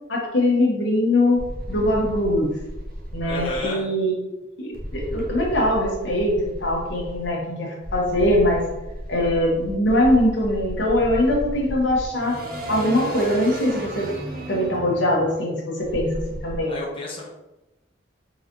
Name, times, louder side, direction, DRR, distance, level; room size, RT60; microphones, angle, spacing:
voice 1, 0.1-1.4 1.7-2.5 3.1-4.3 4.6-6.3 6.6-8.6 9.1-12.4 12.7-14.1 14.5-16.7, left 1 dB, 75° left, -2 dB, 1.2 m, -22 dB
sound 1, 1.4-3.7 4.7-7.3 7.8-16.6, right 1 dB, 55° right, 0.9 m, -33 dB
voice 2, 3.3-3.8 16.7-17.3, left 1 dB, 30° left, -4 dB, 0.9 m, -31 dB
4.0 x 3.9 x 2.9 m, 0.99 s
head